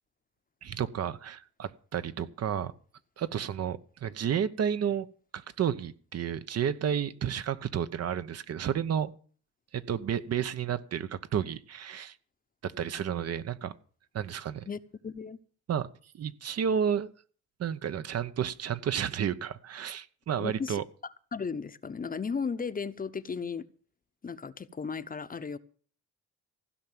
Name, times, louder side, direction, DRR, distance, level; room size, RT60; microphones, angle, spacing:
voice 1, 0.6-2.7 3.2-5.1 5.3-9.1 9.7-12.1 12.6-13.7 14.1-14.6 15.7-15.9 16.1-17.1 17.6-20.8, right 8 dB, 55° right, 0.9 m, -31 dB
voice 2, 14.7-15.4 20.4-20.8 21.3-23.7 24.2-25.6, left 5 dB, 30° left, 0.9 m, -35 dB
16.0 x 5.8 x 9.2 m
cardioid pair, 90°, 30 cm